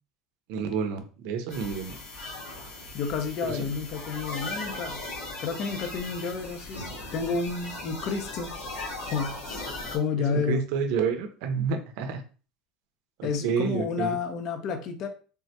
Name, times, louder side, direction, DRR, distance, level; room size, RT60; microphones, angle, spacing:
voice 1, 0.5-2.0 3.4-3.6 10.2-12.2 13.2-14.1, right 6 dB, 70° right, 7 dB, 0.6 m, -29 dB
sound 1, 1.5-10.0, left 2 dB, 85° left, 1.2 m, -38 dB
voice 2, 2.9-5.0 5.4-8.5 9.1-10.7 13.2-15.1, left 5 dB, 55° left, 6 dB, 0.5 m, -31 dB
3.4 x 2.1 x 2.8 m, 0.37 s
supercardioid pair, 105°, 0 cm